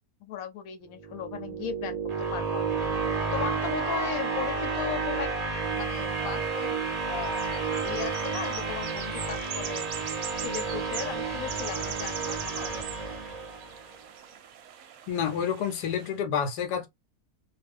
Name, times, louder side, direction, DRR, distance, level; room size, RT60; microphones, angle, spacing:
voice 1, 0.2-2.0 2.3-3.0 3.3-5.3 5.7-6.8 7.1-7.5 7.8-9.9 10.3-12.9, left 9 dB, 70° left, 1.0 m, -37 dB
sound 1, 0.9-14.0, right 4 dB, 40° right, 0.6 m, -31 dB
sound 2, 5.6-16.1, right 9 dB, 70° right, 0.9 m, -42 dB
voice 2, 15.1-16.9, left 7 dB, 90° left, 1.2 m, -29 dB
2.5 x 2.3 x 3.2 m
omnidirectional pair, 1.7 m